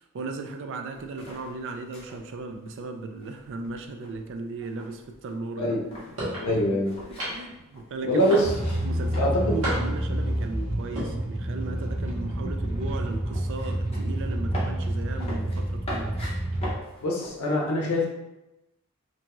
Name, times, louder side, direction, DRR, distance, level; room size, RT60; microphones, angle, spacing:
voice 1, 0.0-5.8 6.2-6.6 7.1-8.5 8.8-16.4, right 3 dB, 60° right, 5 dB, 0.3 m, -36 dB
sound 1, 0.9-9.8 10.1-11.0 11.3-17.4, left 1 dB, 30° left, 0.7 m, -42 dB
sound 2, 6.2-6.5 7.2-7.6 8.3-8.8 9.6-10.1 10.8-11.1, equal, 90° right, 1.0 m, -31 dB
voice 2, 6.4-6.9 8.0-8.5 9.2-9.6 17.0-18.1, equal, 80° left, -2 dB, 0.6 m, -24 dB
sound 3, 8.4-16.7, right 1 dB, 30° right, 1.1 m, -29 dB
2.6 x 2.3 x 2.9 m, 0.96 s
head